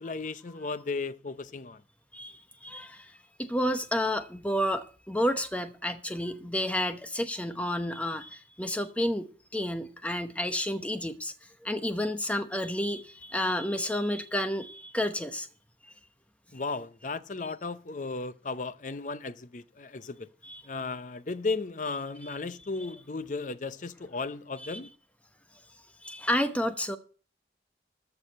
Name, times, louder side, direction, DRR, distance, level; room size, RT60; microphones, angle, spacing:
voice 1, 0.0-1.8 16.5-20.3 20.6-24.9, left 3 dB, 45° left, 0.6 m, -35 dB
voice 2, 2.1-3.1 3.4-11.3 11.6-15.5 20.4-20.6 26.0-27.0, left 1 dB, 10° left, 0.9 m, -30 dB
13.5 x 4.9 x 8.7 m
head